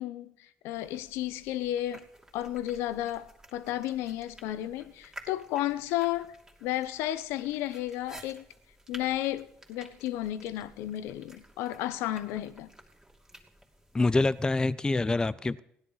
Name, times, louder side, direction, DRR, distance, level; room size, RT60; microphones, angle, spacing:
voice 1, 0.0-2.1 2.3-6.4 6.6-8.4 8.9-12.7, left 13 dB, 85° left, 0.8 m, -33 dB
sound 1, 0.7-14.7, right 1 dB, 10° right, 2.9 m, -53 dB
voice 2, 13.9-15.6, left 2 dB, 20° left, 0.6 m, -26 dB
16.0 x 10.5 x 5.6 m
supercardioid pair, 75°, 4 cm